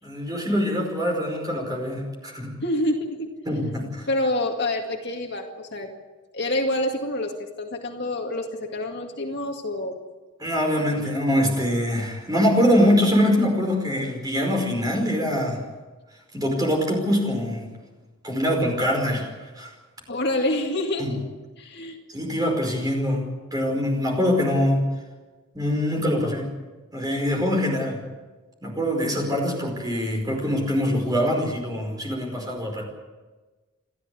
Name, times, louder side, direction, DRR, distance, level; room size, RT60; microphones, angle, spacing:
voice 1, 0.0-2.5 3.5-4.1 10.4-15.6 16.3-17.7 18.2-19.3 19.6-19.7 21.0-21.2 22.1-23.2 23.5-24.8 25.5-26.5 26.9-28.0 28.6-32.8, equal, 15° right, 1 dB, 5.0 m, -23 dB
voice 2, 2.6-3.3 4.1-5.9 6.3-7.3 7.6-9.9 10.9-11.2 20.1-21.2 21.6-22.0, left 1 dB, 50° left, 2 dB, 2.2 m, -27 dB
29.0 x 12.5 x 8.4 m, 1.3 s
head